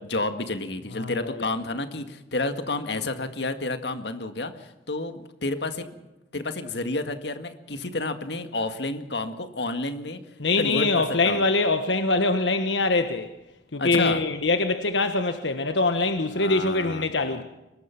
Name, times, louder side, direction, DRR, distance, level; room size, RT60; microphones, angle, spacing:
voice 1, 0.0-5.9 6.3-10.2 10.6-11.4 13.8-14.2 16.3-17.4, left 2 dB, 70° left, 2.0 m, -30 dB
voice 2, 0.9-1.4 10.4-13.3 13.7-17.4, left 3 dB, 90° left, 1.4 m, -24 dB
23.5 x 20.0 x 6.0 m
head